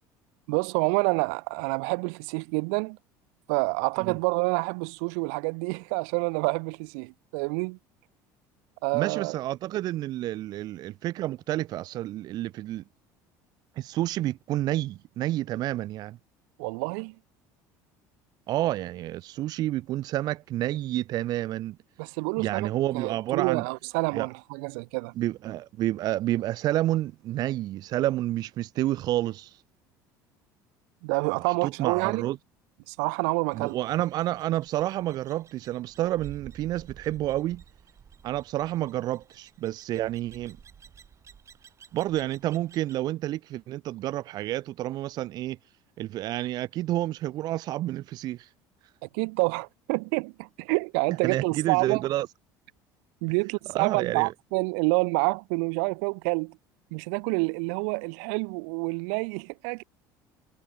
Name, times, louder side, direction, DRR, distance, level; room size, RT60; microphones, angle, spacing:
voice 1, 0.5-3.0 3.5-7.8 8.8-9.4 16.6-17.1 22.0-25.1 31.0-32.3 32.9-33.8 49.0-52.0 53.2-56.6 56.9-59.8, right 40 dB or more, 80° right, 1.1 m, -28 dB
voice 2, 8.9-12.8 13.8-16.2 18.5-21.8 22.4-23.6 24.1-24.3 25.2-29.6 31.5-32.4 33.5-37.6 38.2-40.6 41.9-45.6 46.0-48.5 51.2-52.3 53.7-54.3, right 14 dB, 50° right, 0.4 m, -29 dB
sound 1, 33.5-43.0, right 7 dB, 35° right, 2.9 m, -52 dB
supercardioid pair, 105°, 9 cm